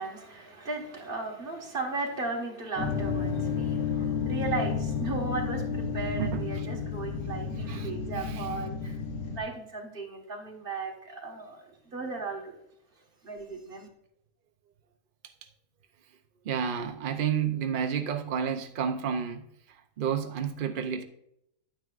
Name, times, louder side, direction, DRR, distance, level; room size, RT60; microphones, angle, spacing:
voice 1, 0.0-9.0 9.3-12.6 13.2-13.9, right 3 dB, 35° right, 1.7 m, -36 dB
sound 1, 2.8-9.4, left 6 dB, 65° left, 1.6 m, -31 dB
voice 2, 6.1-6.7 7.7-7.9 8.2-8.5 16.4-19.4 20.0-21.0, right 7 dB, 75° right, 0.4 m, -30 dB
10.0 x 9.2 x 2.5 m
omnidirectional pair, 1.7 m